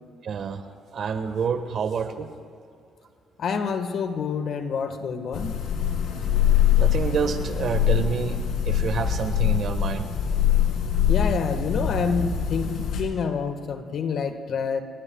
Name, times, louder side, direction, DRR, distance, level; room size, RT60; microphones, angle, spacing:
voice 1, 0.2-0.6 0.9-2.3 6.8-8.4 8.6-10.1, right 6 dB, 65° right, 8 dB, 1.5 m, -28 dB
voice 2, 3.4-5.5 11.1-14.8, left 6 dB, 65° left, 7 dB, 1.5 m, -27 dB
sound 1, 5.3-13.0, left 9 dB, 85° left, 2.9 m, -23 dB
29.5 x 20.5 x 2.4 m, 2.5 s
cardioid pair, 90°, 0 cm